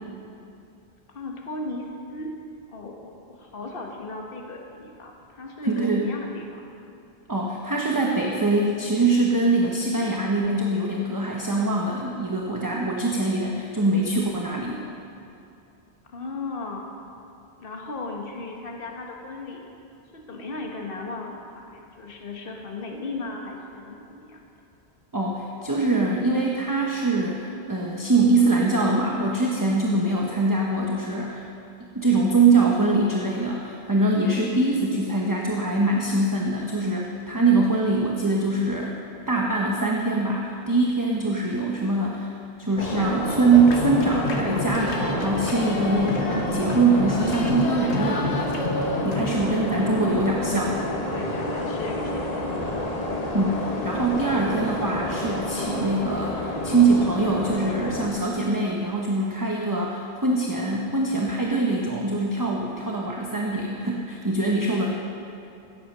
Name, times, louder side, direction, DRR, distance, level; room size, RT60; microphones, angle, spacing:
voice 1, 1.1-2.4 2.7-6.6 16.1-16.9 17.6-19.7 20.1-24.4 51.1-52.5, left 2 dB, 55° left, 0 dB, 1.5 m, -36 dB
voice 2, 5.6-6.1 7.3-14.8 25.1-31.4 31.9-39.0 39.3-48.5 49.0-50.8 53.3-64.9, right 3 dB, 20° right, -2 dB, 1.0 m, -23 dB
sound 1, 42.8-58.1, left 1 dB, 35° left, 1.3 m, -29 dB
sound 2, 43.5-49.4, left 2 dB, 80° left, 1.6 m, -30 dB
16.0 x 8.5 x 6.5 m, 2.7 s
omnidirectional pair, 1.1 m